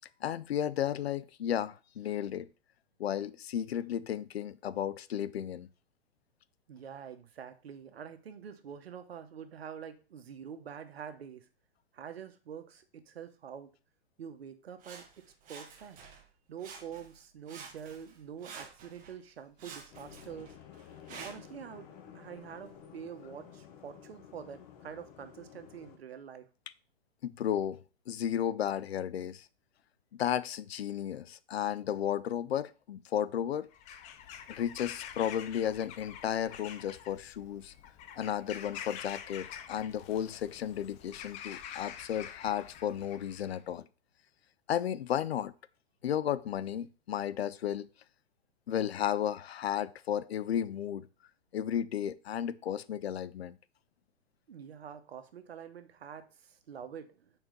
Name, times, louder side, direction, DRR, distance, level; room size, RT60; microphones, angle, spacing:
voice 1, 0.2-2.5 3.0-5.7 21.1-21.2 27.2-29.5 30.1-33.7 34.5-37.7 38.2-43.9 44.7-45.5 46.0-47.9 48.7-51.1 51.5-53.6, left 10 dB, 85° left, 0.5 m, -33 dB
voice 2, 6.7-11.5 11.9-13.7 14.2-16.0 16.5-20.6 21.2-26.5 54.5-57.3, right 8 dB, 80° right, 1.0 m, -46 dB
Sawing, 14.8-16.3 16.6-17.2 17.5-19.2 19.6-21.6 22.2-22.3, right 5 dB, 25° right, 1.2 m, -49 dB
sound 1, 19.9-26.0, left 8 dB, 40° left, 1.0 m, -52 dB
Bird vocalization bird call bird song / Crow, 33.7-43.6, left 9 dB, 25° left, 0.5 m, -47 dB
4.5 x 4.4 x 5.1 m
hypercardioid pair, 125°, 30 cm